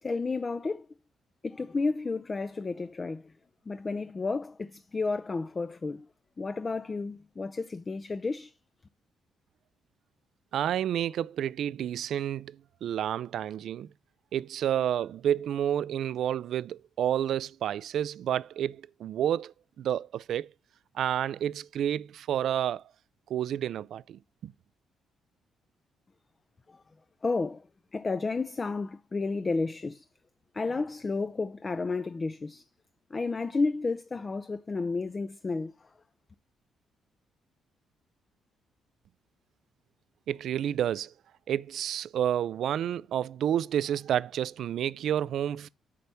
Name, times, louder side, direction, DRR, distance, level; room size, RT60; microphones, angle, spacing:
voice 1, 0.0-0.9 1.4-3.3 3.7-6.1 6.4-8.5 26.7-26.8 27.2-27.7 27.9-30.1 30.5-32.7 33.1-35.9, left 3 dB, 30° left, 0.4 m, -32 dB
voice 2, 10.5-13.9 14.3-20.5 20.9-22.8 23.3-24.5 40.3-41.1 41.5-45.7, right 10 dB, 70° right, 0.3 m, -30 dB
8.4 x 3.4 x 6.5 m
cardioid pair, 90°, 0 cm